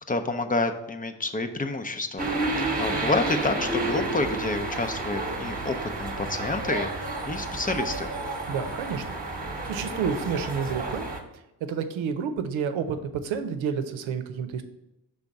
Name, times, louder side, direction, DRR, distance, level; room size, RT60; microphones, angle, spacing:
voice 1, 0.1-2.3 2.6-8.1, left 2 dB, 20° left, 7 dB, 0.5 m, -29 dB
sound 1, 2.2-11.2, right 2 dB, 20° right, 1.0 m, -31 dB
voice 2, 8.5-9.0 9.4-11.1 11.6-14.6, right 6 dB, 85° right, 9 dB, 0.8 m, -30 dB
5.7 x 3.6 x 5.1 m, 0.91 s
cardioid pair, 95°, 45 cm